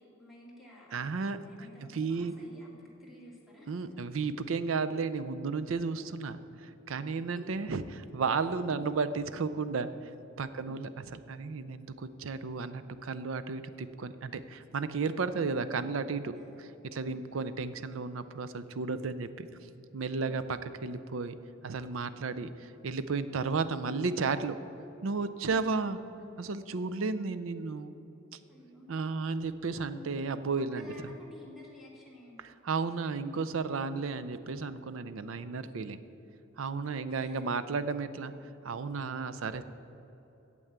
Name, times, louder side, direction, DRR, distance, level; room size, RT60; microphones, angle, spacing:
voice 1, 0.0-3.7 7.3-7.4 8.4-8.9 10.6-10.9 15.4-15.8 16.3-16.7 17.0-17.4 20.2-20.5 28.5-28.9 30.6-32.6 37.1-37.7 38.3-38.5, left 1 dB, ahead, -4 dB, 2.2 m, -54 dB
voice 2, 0.9-1.4 1.8-2.3 3.7-10.1 10.4-19.5 19.9-21.4 21.6-22.5 22.8-24.6 25.0-26.0 26.4-27.9 28.9-30.9 32.6-36.0 36.6-38.3 38.6-39.6, right 4 dB, 70° right, 12 dB, 0.5 m, -33 dB
9.2 x 7.7 x 8.0 m, 3.0 s
head